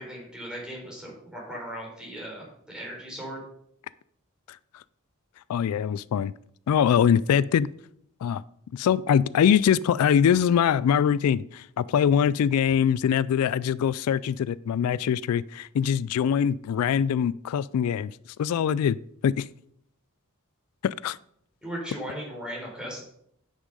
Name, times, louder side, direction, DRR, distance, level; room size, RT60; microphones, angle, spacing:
voice 1, 0.0-3.4 21.6-23.0, equal, 5° right, -3 dB, 3.9 m, -37 dB
voice 2, 5.5-6.3 6.7-7.7 8.2-8.4 8.7-18.1 18.4-19.0 19.2-19.5 20.8-21.2, left 8 dB, 85° left, 18 dB, 0.3 m, -23 dB
9.8 x 6.2 x 5.4 m, 0.69 s
head